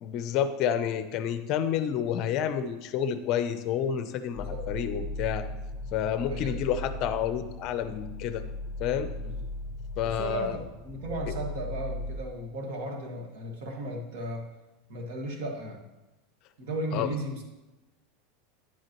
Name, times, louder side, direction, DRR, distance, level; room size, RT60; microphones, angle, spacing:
voice 1, 0.0-5.4 5.9-8.4 8.8-9.1 10.0-10.6 16.9-17.1, left 9 dB, 40° left, 10 dB, 0.6 m, -29 dB
sound 1, 4.4-12.2, left 2 dB, 10° right, 1.1 m, -37 dB
voice 2, 6.2-6.6 9.2-9.4 10.0-14.5 14.9-15.9 16.6-17.4, right 1 dB, 65° right, 1 dB, 1.9 m, -35 dB
10.0 x 7.9 x 3.1 m, 1.1 s
supercardioid pair, 155°, 0 cm